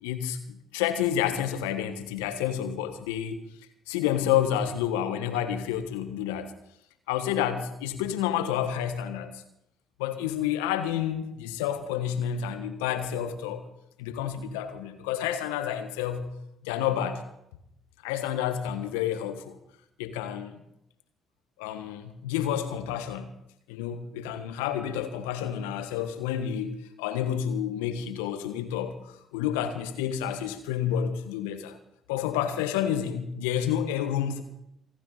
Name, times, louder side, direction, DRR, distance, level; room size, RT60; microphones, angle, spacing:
voice 1, 0.0-3.4 3.9-6.5 7.1-9.4 10.0-13.7 14.0-16.3 16.6-17.2 18.0-19.6 20.0-20.6 21.6-23.3 23.7-31.8 32.1-34.4, left 10 dB, 80° left, 9 dB, 1.4 m, -29 dB
28.5 x 9.5 x 4.1 m, 0.80 s
hypercardioid pair, 50°, 0 cm